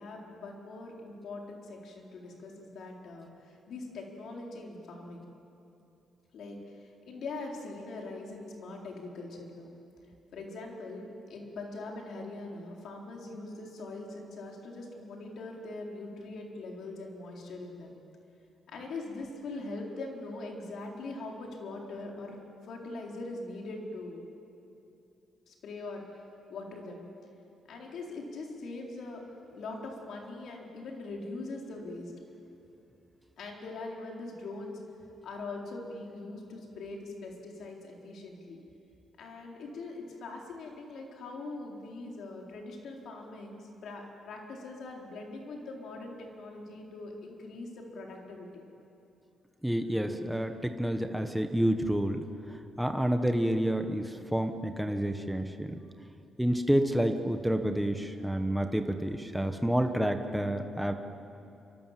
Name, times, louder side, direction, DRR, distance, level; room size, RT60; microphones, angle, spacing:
voice 1, 0.0-5.3 6.3-9.7 10.3-18.0 18.7-24.2 25.5-26.0 26.5-27.0 27.7-29.2 29.5-32.1 33.4-34.8 35.2-38.6 39.2-48.6, left 2 dB, 60° left, 0 dB, 4.2 m, -42 dB
voice 2, 49.6-52.2 52.8-55.7 56.4-60.9, right 1 dB, ahead, 6 dB, 1.1 m, -29 dB
26.5 x 24.5 x 7.6 m, 2.8 s
cardioid pair, 170°, 0 cm